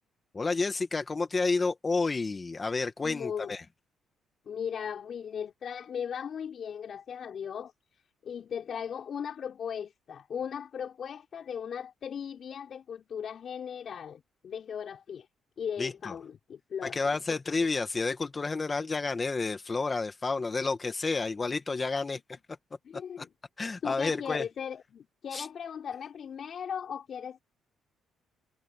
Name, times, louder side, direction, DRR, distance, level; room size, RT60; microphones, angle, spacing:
voice 1, 0.3-3.6 15.8-16.1 16.8-22.2 23.2-23.3 23.6-24.5 25.3-25.5, left 3 dB, 30° left, 1.7 m, -30 dB
voice 2, 3.0-3.5 4.5-7.7 8.2-15.3 15.6-17.0 17.3-17.4 22.8-23.3 23.8-27.4, left 8 dB, 55° left, 4.9 m, -37 dB
cardioid pair, 90°, 0 cm